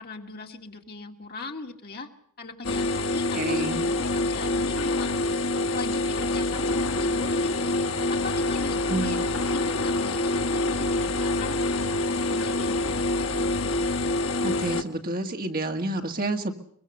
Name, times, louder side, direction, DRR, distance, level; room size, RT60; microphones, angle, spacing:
voice 1, 0.0-2.1 2.4-5.2 5.7-7.8 8.1-11.7 12.1-13.1, left 3 dB, 45° left, 3 dB, 2.1 m, -39 dB
sound 1, 2.6-14.8, left 2 dB, 65° left, 1.4 m, -26 dB
voice 2, 3.3-3.9 8.9-9.1 14.4-16.5, right 2 dB, 40° right, 4 dB, 1.9 m, -29 dB
23.5 x 22.5 x 6.6 m, 0.67 s
head